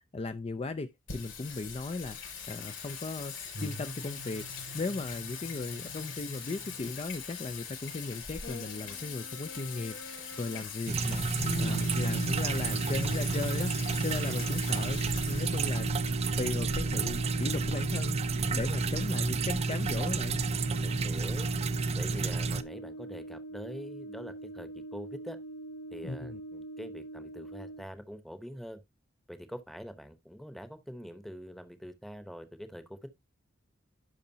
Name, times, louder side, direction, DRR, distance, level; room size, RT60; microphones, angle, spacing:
voice 1, 0.1-2.2 2.5-4.4 4.7-11.3 11.6-15.0 15.3-15.9 16.4-18.2 18.4-20.4 26.0-26.4, left 3 dB, 30° left, 0.4 m, -37 dB
Singing, 1.1-18.7, left 3 dB, 75° left, 4.7 m, -40 dB
sound 1, 10.9-22.6, right 4 dB, 35° right, 0.4 m, -30 dB
Brass instrument, 11.5-27.9, right 2 dB, 45° left, 1.9 m, -44 dB
voice 2, 20.8-21.5 22.0-25.4 25.9-28.8 29.3-33.1, equal, ahead, 0.9 m, -44 dB
11.0 x 5.0 x 2.7 m
head